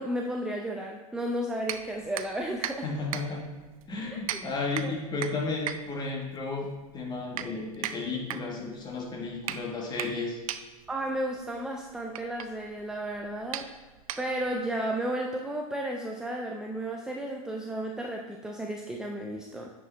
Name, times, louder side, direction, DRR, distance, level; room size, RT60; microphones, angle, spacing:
voice 1, 0.0-2.9 4.3-4.4 4.8-4.9 10.9-13.7 14.2-19.7, right 1 dB, 5° right, 0 dB, 0.5 m, -33 dB
sound 1, 1.6-14.7, right 10 dB, 70° right, 0.5 m, -39 dB
voice 2, 2.8-3.5 3.9-10.4, left 3 dB, 25° left, 0 dB, 1.6 m, -33 dB
9.1 x 5.2 x 3.4 m, 1.3 s
hypercardioid pair, 110°, 19 cm